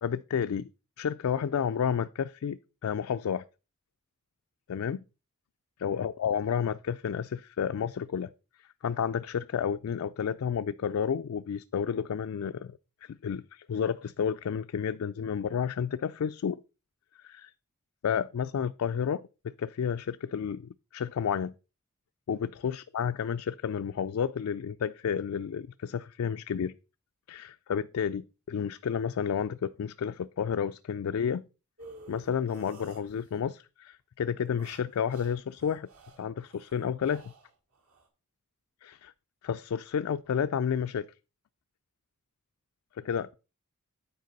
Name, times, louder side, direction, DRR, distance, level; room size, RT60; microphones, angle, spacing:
voice 1, 0.0-0.7 1.0-3.5 4.7-5.0 5.8-8.3 8.6-16.6 17.2-17.5 18.0-21.5 22.3-26.7 27.3-31.4 32.1-35.9 36.2-37.3 38.8-39.1 39.4-41.1 42.9-43.3, left 7 dB, 70° left, 0.3 m, -31 dB
sound 1, 31.8-33.5 34.4-38.1, right 2 dB, 70° right, 2.3 m, -52 dB
9.3 x 4.7 x 5.2 m
head